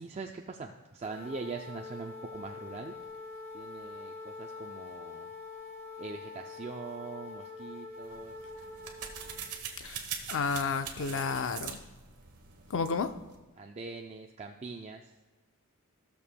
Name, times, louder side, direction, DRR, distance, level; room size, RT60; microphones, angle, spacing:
voice 1, 0.0-2.9 3.5-5.3 6.0-8.3 11.0-11.4 13.6-15.0, right 4 dB, 30° right, 0.4 m, -42 dB
sound 1, 1.0-9.5, left 4 dB, 15° left, 2.1 m, -45 dB
sound 2, 8.0-13.4, right 7 dB, 80° right, 1.1 m, -43 dB
voice 2, 10.3-11.8 12.7-13.1, left 5 dB, 60° left, 0.5 m, -31 dB
15.5 x 6.9 x 2.2 m
head